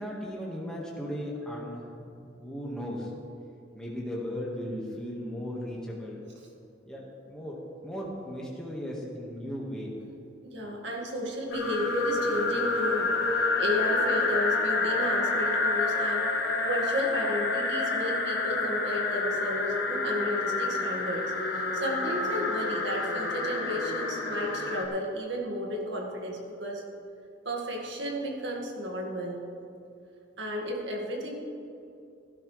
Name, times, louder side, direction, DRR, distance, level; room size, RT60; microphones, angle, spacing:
voice 1, 0.0-1.8 2.4-3.1 3.7-6.2 6.9-9.9, equal, 5° left, -4 dB, 1.7 m, -36 dB
voice 2, 10.4-26.8 27.4-29.4 30.4-31.3, equal, 65° right, 0 dB, 2.0 m, -33 dB
sound 1, 11.5-24.8, left 3 dB, 55° left, 1.5 m, -28 dB
16.0 x 12.0 x 3.4 m, 2.6 s
head